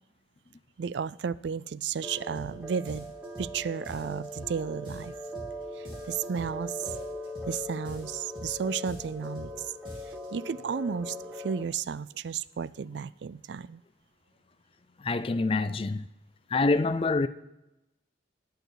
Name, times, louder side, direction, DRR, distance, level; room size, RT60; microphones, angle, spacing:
voice 1, 0.8-3.1 3.4-5.1 5.8-6.9 7.5-9.7 10.1-13.8, right 6 dB, 75° right, 0.4 m, -33 dB
sound 1, 2.0-11.6, left 1 dB, 5° right, 1.5 m, -40 dB
sound 2, 2.3-2.5 2.8-3.5 3.8-4.5 4.8-5.5 5.8-6.5 6.8-7.5 7.8-8.5 8.8-9.5 9.8-10.3, right 1 dB, 30° right, 3.5 m, -44 dB
voice 2, 15.0-16.1 16.5-17.3, left 3 dB, 30° left, 0.4 m, -26 dB
20.0 x 7.0 x 4.0 m
head